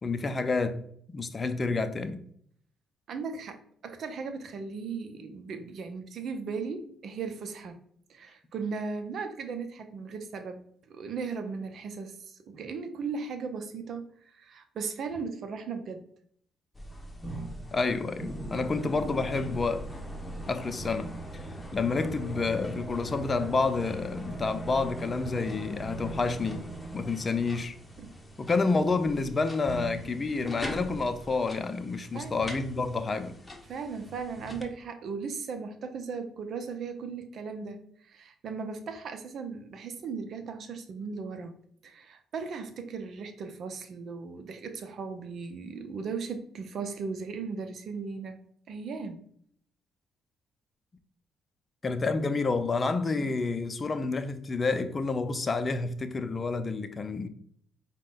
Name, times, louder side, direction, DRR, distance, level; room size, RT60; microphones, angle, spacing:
voice 1, 0.0-2.2 17.7-19.8 20.5-21.4 21.7-26.7 26.9-27.8 28.4-33.3 51.8-57.3, left 3 dB, 35° left, 0.5 m, -29 dB
voice 2, 3.1-3.6 3.8-7.8 8.1-16.0 25.5-25.6 28.0-28.1 32.1-32.4 33.6-41.5 41.8-48.4 48.7-49.2, right 5 dB, 65° right, 0.6 m, -37 dB
sound 1, 16.7-34.6, right 1 dB, 15° left, 0.9 m, -40 dB
4.9 x 2.2 x 3.7 m
supercardioid pair, 65°, 0 cm